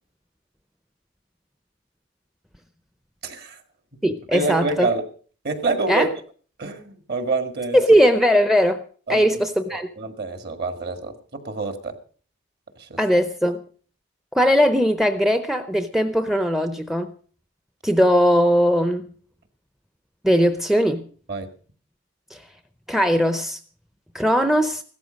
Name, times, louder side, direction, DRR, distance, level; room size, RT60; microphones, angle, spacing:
voice 1, 3.2-3.6 4.3-5.0 5.4-6.1 6.6-7.8 9.1-9.4 9.7-11.9 12.8-13.0 21.3-21.5, right 3 dB, 50° right, 1.8 m, -27 dB
voice 2, 4.0-4.9 5.9-6.1 7.7-8.8 9.1-9.9 13.0-13.6 14.3-17.1 17.8-19.1 20.2-21.1 22.3-22.4 22.9-23.6 24.1-24.8, equal, ahead, 0.6 m, -19 dB
15.5 x 13.5 x 5.2 m
head